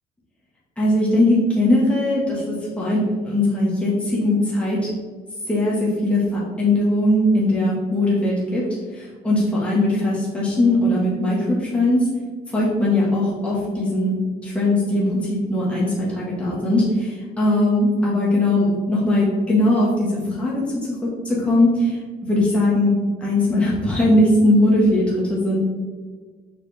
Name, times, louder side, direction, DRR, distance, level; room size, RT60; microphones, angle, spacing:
voice 1, 0.8-4.9 5.5-8.6 8.9-12.1 12.5-14.1 14.4-22.0 22.2-22.9 23.2-25.6, left 1 dB, 5° left, -7 dB, 1.7 m, -20 dB
5.8 x 4.6 x 3.5 m, 1.5 s
cardioid pair, 110°, 17 cm